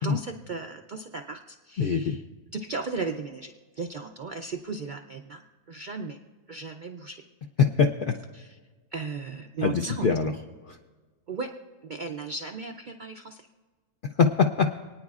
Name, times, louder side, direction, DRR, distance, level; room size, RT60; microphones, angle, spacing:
voice 1, 0.0-2.2 2.5-6.2 6.5-7.2 8.3-8.6 8.9-10.1 11.3-11.5 11.8-13.5, right 4 dB, 65° right, 4 dB, 0.4 m, -36 dB
voice 2, 1.8-2.2 7.6-8.2 9.6-10.3 10.7-10.8 14.2-14.8, left 5 dB, 70° left, 5 dB, 0.5 m, -23 dB
28.0 x 9.5 x 2.4 m, 1.4 s
omnidirectional pair, 1.5 m